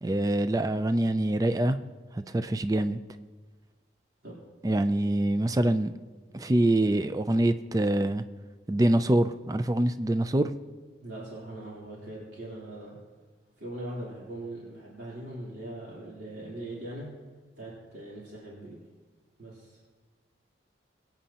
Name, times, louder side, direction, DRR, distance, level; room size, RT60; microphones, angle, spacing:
voice 1, 0.0-1.8 2.1-3.0 4.6-5.9 6.3-8.2 8.7-10.5, right 1 dB, 20° right, 11 dB, 0.3 m, -25 dB
voice 2, 11.0-12.9 13.6-17.1 17.6-18.8 19.4-19.8, right 1 dB, 70° right, -7 dB, 3.4 m, -41 dB
24.0 x 9.0 x 2.9 m, 1.3 s
head